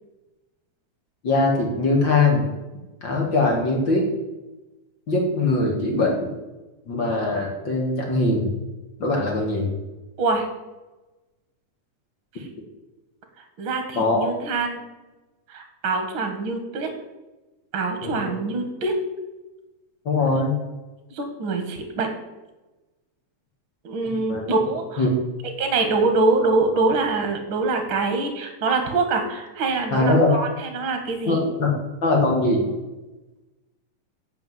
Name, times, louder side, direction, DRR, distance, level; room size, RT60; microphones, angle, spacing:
voice 1, 1.2-2.5 3.0-4.1 5.1-6.3 6.9-8.5 9.0-9.7 14.0-14.4 18.0-18.3 20.1-20.6 24.1-24.4 25.0-25.1 29.9-30.4 31.3-31.7 32.0-32.7, left 2 dB, 40° left, -1 dB, 2.2 m, -21 dB
voice 2, 13.6-14.8 15.5-16.9 17.7-19.0 21.1-22.1 23.8-25.0 25.6-30.5 30.7-31.4, right 3 dB, 45° right, 6 dB, 2.1 m, -24 dB
8.5 x 5.9 x 8.0 m, 1.1 s
omnidirectional pair, 3.9 m